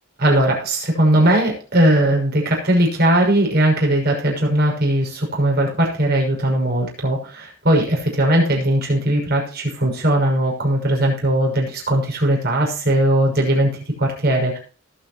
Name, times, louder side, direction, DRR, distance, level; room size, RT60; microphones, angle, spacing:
voice 1, 0.2-13.7 14.0-14.6, right 1 dB, 50° right, 0 dB, 6.2 m, -18 dB
19.5 x 8.4 x 3.0 m, 0.38 s
head